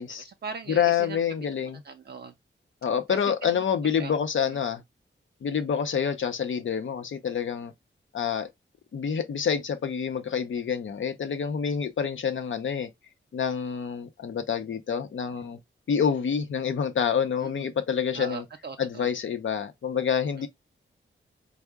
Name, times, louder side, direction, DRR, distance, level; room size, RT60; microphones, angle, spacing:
voice 1, 0.0-1.2 1.8-2.3 3.1-4.1 4.5-4.6 17.4-17.7 18.1-19.1, right 5 dB, 55° right, 0.4 m, -40 dB
voice 2, 0.7-1.8 2.8-4.8 5.4-7.7 8.1-8.5 8.9-12.9 13.3-15.6 15.9-18.4 18.8-20.5, left 7 dB, 75° left, 0.6 m, -27 dB
4.4 x 2.0 x 3.4 m
wide cardioid pair, 180°, 21 cm